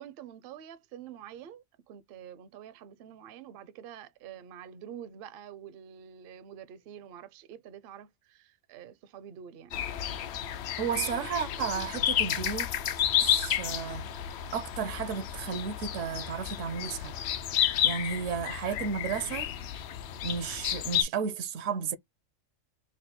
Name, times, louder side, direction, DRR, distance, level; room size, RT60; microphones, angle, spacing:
voice 1, 0.0-9.9, right 9 dB, 60° right, 0.6 m, -47 dB
sound 1, 9.7-21.0, left 10 dB, 65° left, 0.7 m, -31 dB
voice 2, 10.8-12.7 13.2-14.1 14.5-17.1 17.8-19.5 20.2-22.0, right 6 dB, 80° right, 0.9 m, -33 dB
3.6 x 2.1 x 4.2 m
omnidirectional pair, 1.3 m